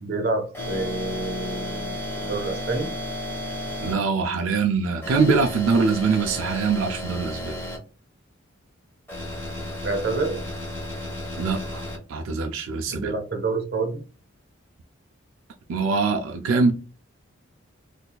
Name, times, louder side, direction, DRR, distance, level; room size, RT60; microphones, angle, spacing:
voice 1, 0.0-2.9 9.8-10.4 12.9-14.0, right 3 dB, 50° right, 0.8 m, -28 dB
sound 1, 0.5-3.9 5.0-7.8 9.1-12.0, left 1 dB, 10° left, 1.1 m, -33 dB
voice 2, 3.8-7.6 11.4-11.8 12.1-13.1 15.7-16.7, right 4 dB, 85° right, 0.4 m, -23 dB
3.9 x 2.6 x 2.3 m
head